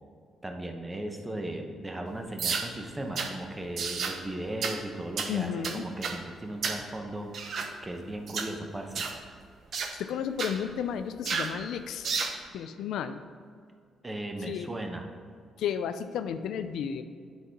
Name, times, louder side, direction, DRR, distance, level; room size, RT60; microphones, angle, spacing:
voice 1, 0.4-7.5 7.8-9.1 14.0-15.1, right 1 dB, 15° right, 4 dB, 1.0 m, -37 dB
sound 1, 2.4-2.7 3.2-3.3 3.8-4.2 4.6-4.8 5.2-5.3 5.6-6.2 6.6-6.8 7.3-7.7 8.3-8.5 9.0-9.2 9.7-9.9 10.4-10.6 11.3-11.5 12.0-12.4, right 5 dB, 60° right, 0.8 m, -31 dB
voice 2, 5.3-5.8 9.9-12.1 12.5-13.2 14.5-14.7 15.6-17.0, left 8 dB, 80° left, 10 dB, 0.5 m, -33 dB
10.0 x 4.1 x 5.3 m, 2.2 s
cardioid pair, 90°, 0 cm